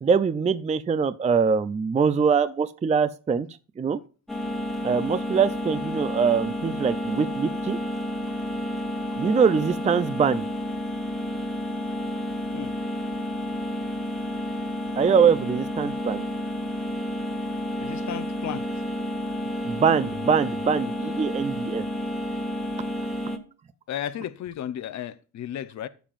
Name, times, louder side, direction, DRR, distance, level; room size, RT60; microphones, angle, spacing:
voice 1, 0.0-3.5 3.8-4.0 4.8-7.8 9.2-10.4 15.0-16.2 19.6-21.8, right 6 dB, 20° right, 0.4 m, -23 dB
sound 1, 4.3-23.4, equal, ahead, 1.3 m, -30 dB
voice 2, 17.8-18.7 23.9-25.9, left 10 dB, 55° left, 0.7 m, -34 dB
15.0 x 7.2 x 2.5 m
cardioid pair, 140°, 33 cm